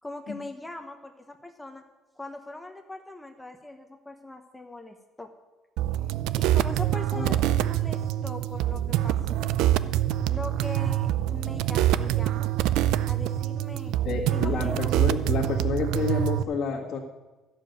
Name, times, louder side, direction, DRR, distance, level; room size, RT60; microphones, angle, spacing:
voice 1, 0.0-1.8 2.2-5.3 6.4-9.4 10.2-12.5 13.0-13.9 14.3-14.8, left 2 dB, 10° left, 5 dB, 1.0 m, -41 dB
sound 1, 5.8-16.4, right 13 dB, 85° right, 0.5 m, -25 dB
voice 2, 14.0-17.0, left 5 dB, 50° left, -4 dB, 1.7 m, -29 dB
12.5 x 6.9 x 9.2 m, 1.2 s
cardioid pair, 110°, 0 cm